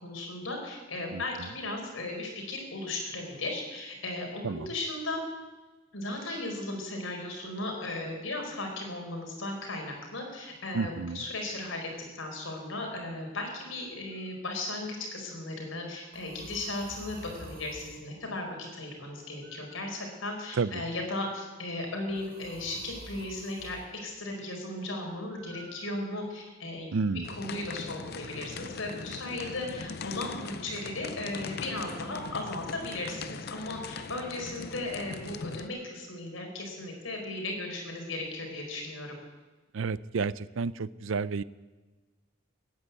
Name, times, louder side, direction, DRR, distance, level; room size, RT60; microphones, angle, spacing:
voice 1, 0.0-5.2 5.9-26.9 27.3-39.1, left 2 dB, 75° left, 2 dB, 4.5 m, -36 dB
voice 2, 1.1-1.5 4.4-4.7 10.7-11.3 20.6-20.8 26.9-27.3 39.7-41.4, right 4 dB, 70° right, 18 dB, 0.5 m, -31 dB
sound 1, 14.1-14.4 16.1-18.0 19.4-20.5 22.1-23.9 25.3-26.5, right 1 dB, 45° right, 2.0 m, -50 dB
sound 2, 27.2-35.7, left 4 dB, 50° left, 0.6 m, -40 dB
17.5 x 10.0 x 8.2 m, 1.3 s
head